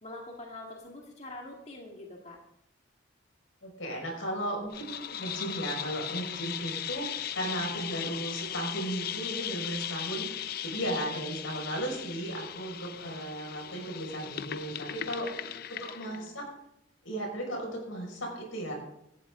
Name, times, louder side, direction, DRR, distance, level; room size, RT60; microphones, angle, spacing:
voice 1, 0.0-2.4 7.7-8.2 15.5-16.4, left 2 dB, 35° left, -1 dB, 2.0 m, -45 dB
voice 2, 3.6-16.5 17.0-18.7, right 1 dB, 85° left, 1 dB, 5.7 m, -36 dB
sound 1, 4.7-16.2, left 10 dB, 50° left, 0.5 m, -38 dB
17.5 x 13.5 x 3.8 m, 0.80 s
head